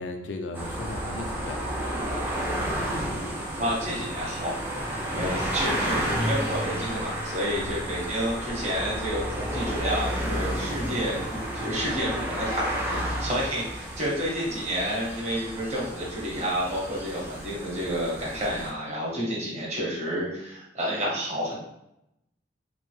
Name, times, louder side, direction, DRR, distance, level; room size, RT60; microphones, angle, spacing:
voice 1, 0.0-1.8 7.5-7.8 12.5-12.6 12.9-13.2, left 2 dB, 70° left, 5 dB, 0.4 m, -37 dB
sound 1, 0.5-18.7, right 1 dB, 10° right, 0.5 m, -31 dB
voice 2, 3.6-12.7 13.2-21.7, equal, 35° right, -5 dB, 1.1 m, -30 dB
3.4 x 2.0 x 3.0 m, 0.84 s
head